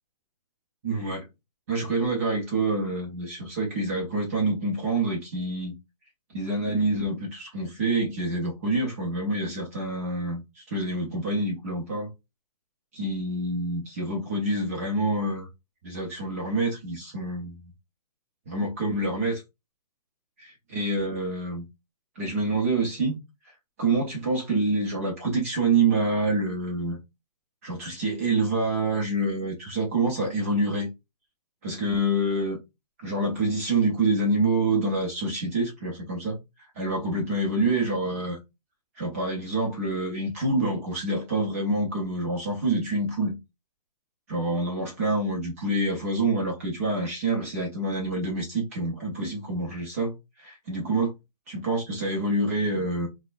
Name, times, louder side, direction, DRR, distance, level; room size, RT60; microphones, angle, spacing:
voice 1, 0.8-1.3 1.7-5.7 6.3-12.1 12.9-15.5 15.8-17.6 18.5-19.4 20.7-21.6 22.2-23.2 23.8-27.0 27.6-30.9 31.6-32.6 33.0-36.4 36.8-38.4 39.0-43.4 44.3-50.1 50.4-51.1 51.5-53.1, right 2 dB, 20° right, 0.6 m, -27 dB
4.1 x 2.2 x 2.4 m
hypercardioid pair, 175°, 21 cm